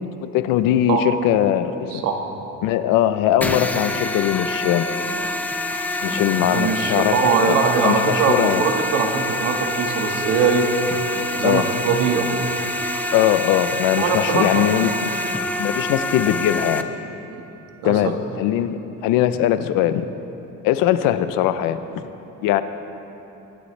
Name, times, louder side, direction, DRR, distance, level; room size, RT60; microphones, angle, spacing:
voice 1, 0.2-2.0 2.6-4.9 6.0-8.6 11.4-11.7 13.1-15.1 15.6-16.9 17.8-20.1 20.6-22.0 22.4-22.6, left 11 dB, 80° left, 11 dB, 0.7 m, -20 dB
sound 1, 3.4-16.8, left 1 dB, 5° left, 0.3 m, -26 dB
voice 2, 6.4-10.7 11.4-12.3 14.0-14.7 17.8-18.1, right 5 dB, 80° right, 3 dB, 1.7 m, -21 dB
24.0 x 11.0 x 3.3 m, 3.0 s
cardioid pair, 175°, 32 cm